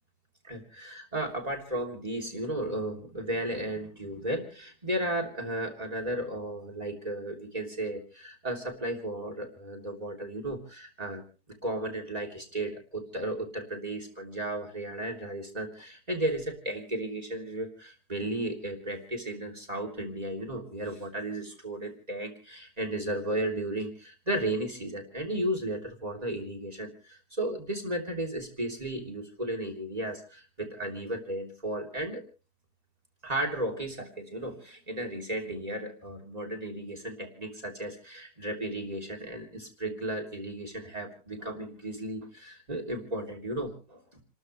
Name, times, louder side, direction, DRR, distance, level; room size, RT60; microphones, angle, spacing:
voice 1, 0.4-11.2 11.6-32.2 33.2-44.2, right 1 dB, 25° right, 4 dB, 3.4 m, -34 dB
30.0 x 13.0 x 3.2 m, 0.35 s
omnidirectional pair, 1.6 m